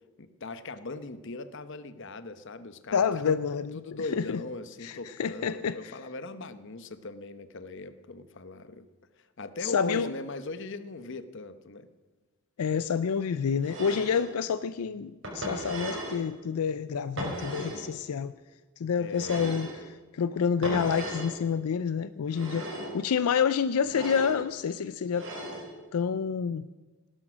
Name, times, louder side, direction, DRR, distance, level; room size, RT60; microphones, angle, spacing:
voice 1, 0.2-3.4 3.7-8.9 9.2-11.9 19.0-19.5, left 3 dB, 55° left, 0.9 m, -39 dB
voice 2, 2.9-3.8 4.1-4.4 4.8-5.9 9.6-10.1 12.6-18.3 18.8-25.3 25.9-26.7, left 6 dB, 85° left, 0.4 m, -28 dB
sound 1, 13.6-14.3 15.2-16.2 17.2-17.9 19.1-19.8 20.6-21.3 22.3-23.0 23.8-24.4 25.1-25.7, right 1 dB, 55° right, 4.9 m, -36 dB
18.0 x 11.0 x 6.2 m
head